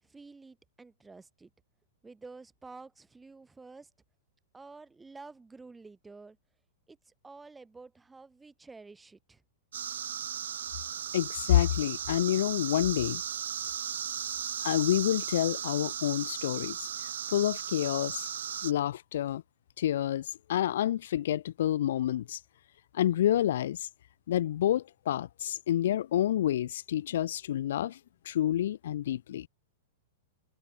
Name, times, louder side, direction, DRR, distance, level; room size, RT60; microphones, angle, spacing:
voice 1, 0.0-1.5 2.0-3.9 4.5-6.4 6.9-9.4, right 3 dB, 10° right, 4.5 m, -50 dB
sound 1, 9.7-18.7, right 9 dB, 65° right, 1.8 m, -36 dB
voice 2, 11.1-13.2 14.6-16.9 17.3-18.3 18.6-19.4 19.8-22.4 22.9-23.9 24.3-28.0 28.2-29.5, left 12 dB, 55° left, 1.1 m, -28 dB
figure-of-eight pair, 100°, 0 cm